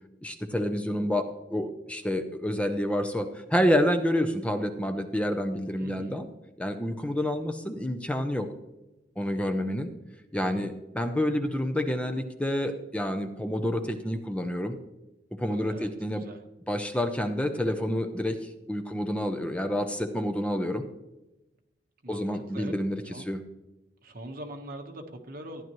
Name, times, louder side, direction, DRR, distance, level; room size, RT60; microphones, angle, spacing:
voice 1, 0.2-6.3 6.6-8.5 9.2-9.9 10.3-14.8 15.4-16.2 16.7-20.8 22.1-23.4, equal, 5° left, 7 dB, 0.6 m, -28 dB
voice 2, 5.8-6.2 9.2-9.6 10.4-10.7 15.4-16.4 22.0-22.7 23.1-23.2 24.0-25.6, right 1 dB, 50° right, 3 dB, 1.3 m, -43 dB
14.5 x 10.5 x 3.1 m, 0.97 s
head